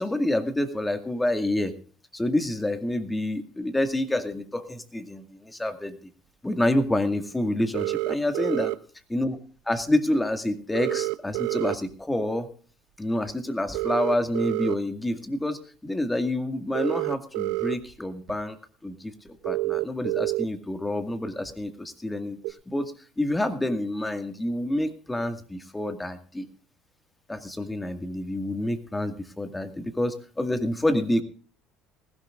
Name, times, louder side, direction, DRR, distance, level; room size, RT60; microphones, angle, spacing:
voice 1, 0.0-1.7 2.1-5.9 6.4-8.7 9.1-9.4 9.7-12.5 13.0-18.6 18.8-22.4 22.7-26.5 27.3-31.2, left 1 dB, 10° left, 8 dB, 2.0 m, -28 dB
sound 1, 7.7-8.8 10.7-11.8 13.7-14.7 16.7-17.7 18.3-18.4 19.4-20.4 22.4-22.5, right 23 dB, 80° right, 0.8 m, -27 dB
19.5 x 16.0 x 2.5 m, 0.41 s
supercardioid pair, 85°, 0 cm